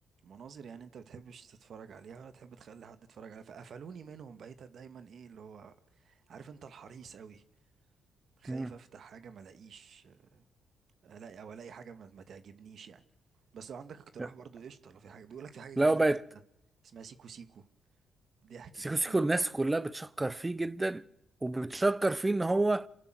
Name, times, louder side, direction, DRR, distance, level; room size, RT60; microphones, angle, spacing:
voice 1, 0.2-7.4 8.4-10.4 11.0-13.0 13.5-16.0 16.8-17.6 18.4-19.2, right 6 dB, 60° right, 2.2 m, -49 dB
voice 2, 15.8-16.2 18.8-21.0 21.4-22.9, right 2 dB, 15° right, 1.1 m, -28 dB
28.0 x 17.0 x 7.9 m
cardioid pair, 90°, 0 cm